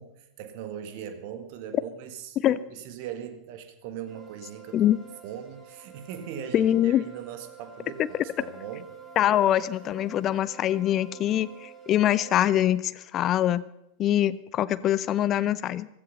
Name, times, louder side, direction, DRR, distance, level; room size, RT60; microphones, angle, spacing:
voice 1, 0.0-4.9 5.2-8.9, right 9 dB, 45° right, 9 dB, 1.8 m, -40 dB
sound 1, 4.1-12.6, right 6 dB, 20° right, 6.9 m, -48 dB
voice 2, 6.5-7.0 8.1-8.2 9.2-13.6 14.0-15.9, left 12 dB, 30° left, 18 dB, 0.6 m, -24 dB
16.0 x 14.0 x 5.5 m, 0.81 s
figure-of-eight pair, 90°, 0 cm